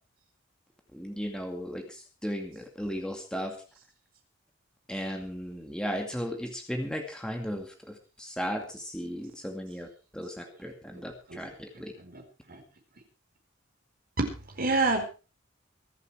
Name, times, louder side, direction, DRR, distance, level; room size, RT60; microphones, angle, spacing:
voice 1, 0.9-1.8 2.2-3.5 4.9-7.7 8.2-9.9 10.1-11.9, equal, 5° left, 3 dB, 2.3 m, -35 dB
voice 2, 14.6-15.0, right 3 dB, 50° right, 3 dB, 4.4 m, -27 dB
24.5 x 8.2 x 4.7 m, 0.35 s
head